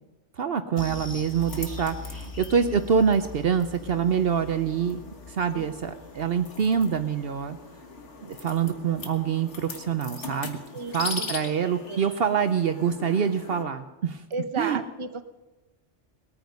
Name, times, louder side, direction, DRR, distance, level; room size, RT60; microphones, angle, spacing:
voice 1, 0.4-5.0 5.3-7.6 8.3-10.6 10.9-14.2 14.6-14.8, right 7 dB, 60° right, 9 dB, 0.9 m, -25 dB
sound 1, 0.8-13.6, left 4 dB, 80° left, 1.8 m, -41 dB
sound 2, 0.8-9.4 9.7-9.9 10.3-10.4, left 4 dB, 10° left, 0.9 m, -43 dB
voice 2, 10.7-11.5 11.9-12.0 14.3-15.2, right 4 dB, 30° right, 8 dB, 0.8 m, -34 dB
21.0 x 9.3 x 5.3 m, 1.1 s
omnidirectional pair, 1.2 m